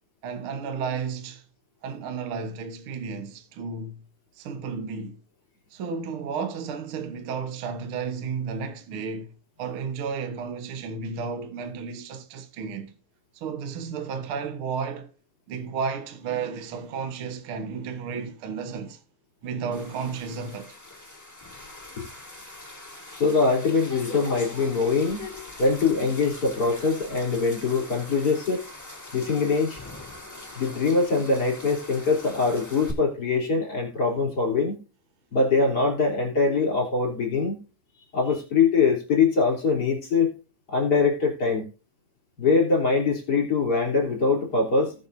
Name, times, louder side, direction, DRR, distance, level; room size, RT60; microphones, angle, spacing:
voice 1, 0.2-1.4 1.8-4.0 4.4-5.2 5.7-9.3 9.6-13.0 13.3-15.1 15.5-19.0 19.4-20.8, right 5 dB, 55° right, 1.7 m, -33 dB
sound 1, 19.7-32.9, left 2 dB, 10° left, 1.2 m, -42 dB
voice 2, 23.1-25.2 25.6-28.7 29.1-29.8 30.6-34.8 35.3-37.6 38.1-40.3 40.7-41.7 42.4-44.9, left 4 dB, 30° left, 3.9 m, -23 dB
19.0 x 6.7 x 2.7 m
omnidirectional pair, 3.5 m